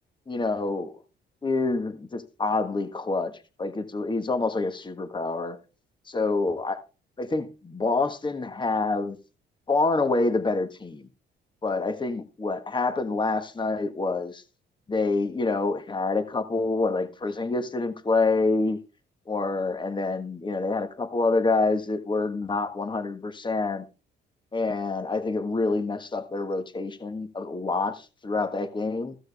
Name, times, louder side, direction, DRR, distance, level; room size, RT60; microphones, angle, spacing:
voice 1, 0.3-0.9 1.4-3.3 3.6-5.6 6.1-6.8 7.2-9.2 9.7-11.1 11.6-14.4 14.9-18.8 19.3-23.8 24.5-29.2, left 3 dB, 25° left, 1.5 m, -27 dB
15.0 x 6.3 x 3.5 m
cardioid pair, 90°, 20 cm